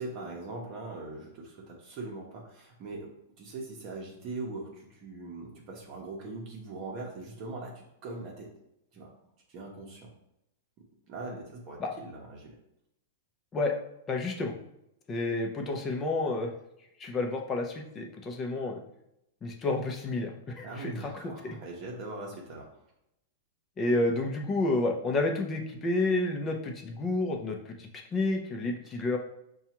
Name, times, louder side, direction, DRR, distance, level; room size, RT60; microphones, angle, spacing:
voice 1, 0.0-8.5 8.9-9.1 9.5-10.1 11.1-12.5 20.6-22.7, right 2 dB, 40° right, -2 dB, 0.8 m, -41 dB
voice 2, 14.1-14.5 15.1-16.5 17.0-18.8 19.4-21.3 23.8-29.2, left 2 dB, 20° left, 2 dB, 0.6 m, -30 dB
5.3 x 2.3 x 2.9 m, 0.82 s
hypercardioid pair, 145°, 0 cm